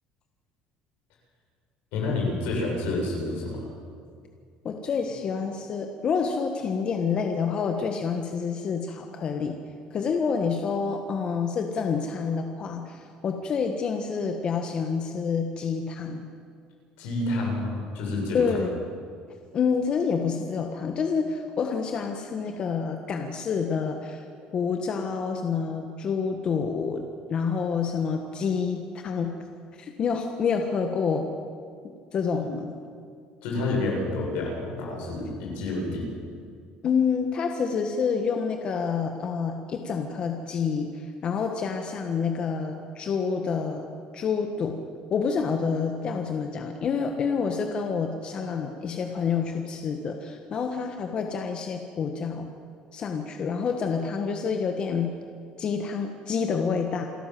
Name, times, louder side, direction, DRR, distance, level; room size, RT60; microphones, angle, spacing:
voice 1, 1.9-3.7 17.0-18.6 32.3-32.5 33.4-36.1, left 2 dB, 85° left, -1 dB, 7.2 m, -29 dB
voice 2, 4.6-9.6 9.9-16.3 18.3-18.8 19.5-24.2 24.5-29.3 29.7-31.3 32.1-32.7 36.8-43.9 44.1-44.8 45.1-52.5 52.9-55.2 55.6-57.0, left 5 dB, 40° left, 4 dB, 1.5 m, -28 dB
27.5 x 13.0 x 7.7 m, 2.2 s
cardioid pair, 135°, 3 cm